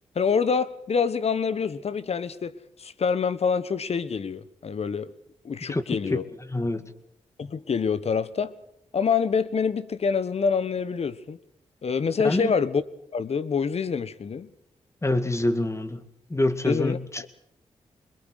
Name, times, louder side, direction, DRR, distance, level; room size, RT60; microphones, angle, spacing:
voice 1, 0.1-5.1 5.4-6.2 7.4-8.5 8.9-11.4 11.8-12.8 13.1-14.5 16.6-17.3, left 6 dB, 60° left, 1.3 m, -26 dB
voice 2, 6.5-6.8 12.2-12.5 15.0-17.3, left 1 dB, 25° left, 2.2 m, -26 dB
23.0 x 21.5 x 6.6 m
supercardioid pair, 45°, 12 cm